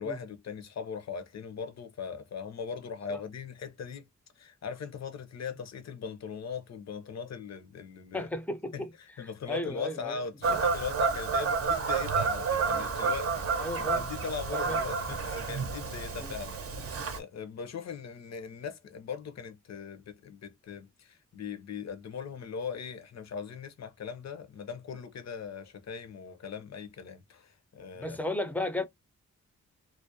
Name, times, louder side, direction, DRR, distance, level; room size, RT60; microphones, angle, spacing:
voice 1, 0.0-4.1 4.4-8.3 8.7-28.2, left 6 dB, 60° left, 0.6 m, -40 dB
voice 2, 8.1-8.9 9.5-10.2 13.6-14.1 14.5-14.8 16.2-16.3 27.9-28.8, left 1 dB, 5° left, 0.5 m, -34 dB
Fowl / Bird vocalization bird call bird song, 10.4-17.2, right 5 dB, 50° right, 0.6 m, -30 dB
2.4 x 2.0 x 2.6 m
cardioid pair, 75°, 30 cm